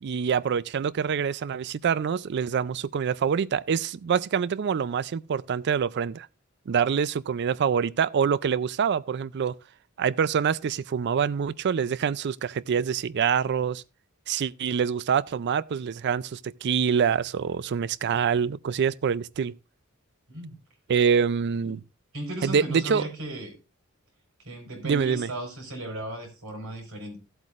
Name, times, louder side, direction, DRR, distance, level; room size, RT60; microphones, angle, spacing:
voice 1, 0.0-6.3 6.7-9.5 10.0-13.8 14.3-19.5 20.9-21.8 22.4-23.1 24.8-25.3, right 7 dB, 55° right, 0.4 m, -25 dB
voice 2, 22.1-23.5 24.4-27.2, right 1 dB, 75° right, 4.5 m, -36 dB
16.0 x 8.0 x 2.5 m
head